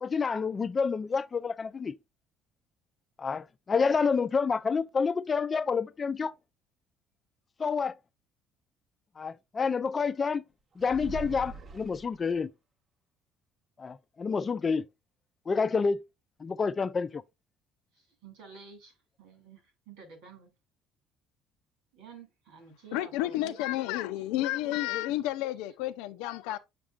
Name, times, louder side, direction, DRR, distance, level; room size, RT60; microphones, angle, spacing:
voice 1, 0.0-2.0 3.2-6.3 7.6-7.9 9.2-10.4 10.8-12.5 13.8-14.9 15.5-16.0 16.4-17.2, left 5 dB, 30° left, 0.5 m, -28 dB
sound 1, 10.8-12.4, right 3 dB, 40° right, 0.7 m, -42 dB
voice 2, 17.9-20.5 21.9-23.6, right 5 dB, 85° right, 2.6 m, -51 dB
voice 3, 22.9-26.6, left 15 dB, 85° left, 0.5 m, -31 dB
7.1 x 5.9 x 2.4 m
supercardioid pair, 95°, 0 cm